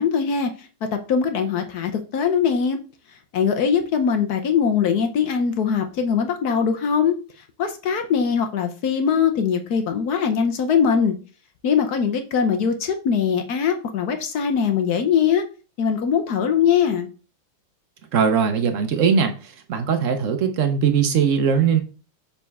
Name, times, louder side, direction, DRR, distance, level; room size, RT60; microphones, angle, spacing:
voice 1, 0.0-2.8 3.3-7.2 7.6-11.2 11.6-15.4 15.8-17.1, left 7 dB, 65° left, 1.0 m, -21 dB
voice 2, 18.1-21.8, right 6 dB, 75° right, 0.7 m, -20 dB
6.9 x 4.2 x 3.5 m
omnidirectional pair, 2.3 m